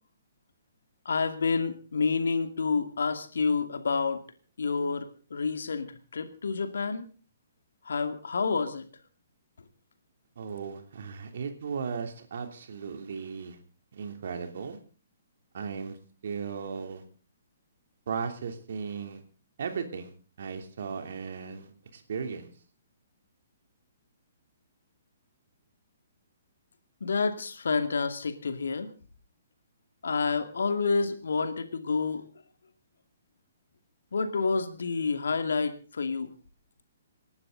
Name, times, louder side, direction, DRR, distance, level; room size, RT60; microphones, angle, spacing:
voice 1, 1.1-4.2 4.6-5.9 6.1-7.1 7.9-8.9 27.0-28.9 30.0-32.2 34.1-36.3, left 4 dB, 65° left, 9 dB, 2.2 m, -28 dB
voice 2, 10.4-13.6 13.9-14.8 15.5-16.0 16.2-17.0 18.1-19.2 19.6-20.1 20.4-22.5, right 6 dB, 55° right, 6 dB, 3.0 m, -36 dB
27.5 x 12.0 x 3.9 m, 0.38 s
figure-of-eight pair, 125°, 0 cm